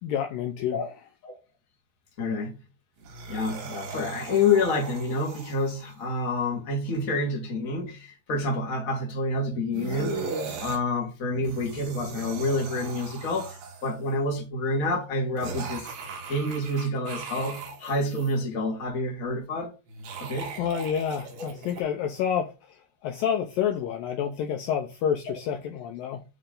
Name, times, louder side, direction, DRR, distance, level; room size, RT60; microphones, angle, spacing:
voice 1, 0.0-0.8 20.6-22.8 23.0-26.2, left 8 dB, 90° left, 2.0 m, -28 dB
voice 2, 2.2-2.6 3.3-10.3 10.6-15.9 16.3-19.7 20.2-20.6, left 2 dB, 30° left, 1.5 m, -28 dB
sound 1, 3.0-6.0 9.7-10.8 11.3-14.1 15.4-18.3 19.9-21.8, right 4 dB, 70° right, 3.9 m, -38 dB
9.3 x 3.3 x 3.8 m
omnidirectional pair, 5.1 m